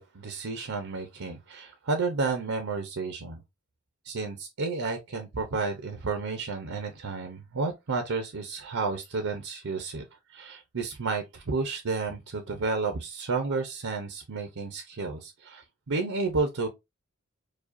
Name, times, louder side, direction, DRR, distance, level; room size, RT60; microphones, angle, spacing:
voice 1, 0.0-3.4 4.0-10.0 10.3-16.7, right 4 dB, 65° right, 0.7 m, -31 dB
4.8 x 2.3 x 2.5 m
head